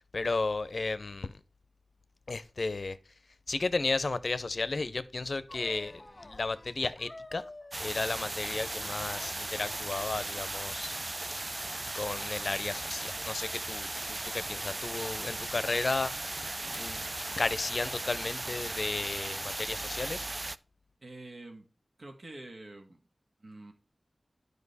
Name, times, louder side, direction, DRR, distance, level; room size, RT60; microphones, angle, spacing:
voice 1, 0.1-1.4 2.3-3.0 3.5-7.4 7.8-10.9 11.9-16.1 16.8-17.1 17.4-20.3, left 3 dB, 65° left, 0.5 m, -33 dB
sound 1, 5.5-10.6, left 2 dB, 30° left, 0.7 m, -50 dB
sound 2, 7.7-20.6, right 2 dB, 40° right, 0.3 m, -37 dB
sound 3, 12.9-14.4 15.9-17.3, left 1 dB, 10° left, 1.0 m, -55 dB
voice 2, 21.0-21.7 22.0-23.1 23.4-23.7, right 2 dB, 70° right, 1.5 m, -47 dB
9.7 x 5.1 x 4.1 m
wide cardioid pair, 50°, 0 cm